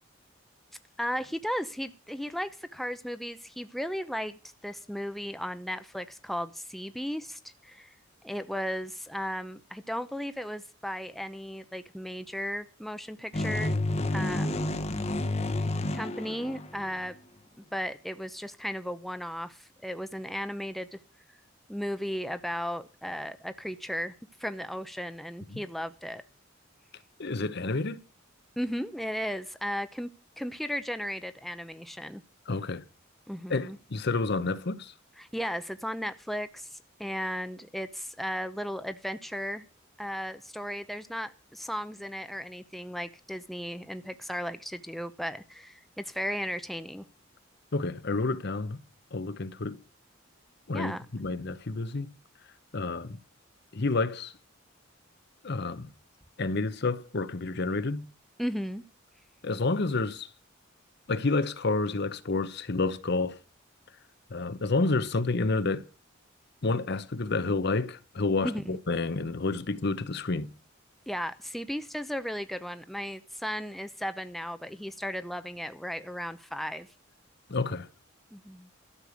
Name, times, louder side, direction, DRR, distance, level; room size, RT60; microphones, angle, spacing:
voice 1, 1.0-7.9 8.2-13.7 14.1-14.8 15.9-17.1 17.7-21.0 21.7-24.1 24.4-26.2 28.6-30.1 30.4-32.2 33.3-33.8 35.2-39.7 40.0-47.0 50.7-51.0 58.4-58.8 68.4-68.8 71.1-76.9 78.3-78.7, equal, ahead, 0.7 m, -35 dB
sound 1, 13.3-17.1, left 1 dB, 35° left, 1.1 m, -30 dB
voice 2, 27.2-28.0 32.5-32.8 33.5-34.9 47.7-48.8 49.1-49.8 50.7-52.1 52.7-53.2 53.7-54.3 55.4-55.9 56.4-58.1 59.4-60.3 61.1-63.4 64.3-65.9 66.6-70.5 77.5-77.9, left 3 dB, 55° left, 0.9 m, -29 dB
13.0 x 6.8 x 8.2 m
head